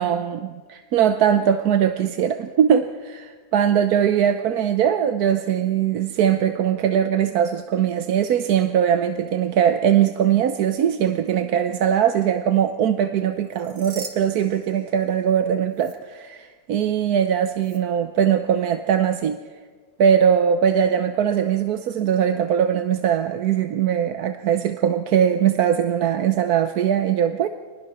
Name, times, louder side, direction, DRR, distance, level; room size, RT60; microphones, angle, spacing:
voice 1, 0.0-19.4 20.0-27.5, right 9 dB, 75° right, 8 dB, 1.3 m, -21 dB
sound 1, 13.4-15.4 15.7-15.9 17.6-17.8, right 4 dB, 60° right, 2.5 m, -41 dB
25.0 x 20.5 x 6.0 m, 1.5 s
omnidirectional pair, 1.6 m